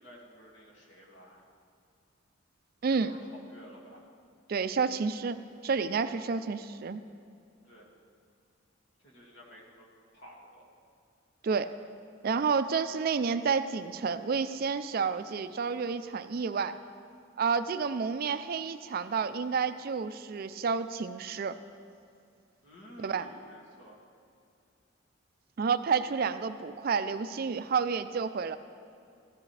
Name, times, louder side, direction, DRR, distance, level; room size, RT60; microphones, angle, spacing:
voice 1, 0.0-1.5 2.9-4.0 6.1-6.2 7.6-7.9 9.0-9.9 10.1-10.7 22.6-24.0, equal, 60° left, -3 dB, 2.1 m, -52 dB
voice 2, 4.5-5.4 5.6-7.0 11.4-11.7 12.2-16.8 17.4-21.6 23.0-23.3 25.6-28.6, right 5 dB, 50° right, 12 dB, 0.4 m, -30 dB
15.5 x 12.0 x 3.3 m, 2.5 s
head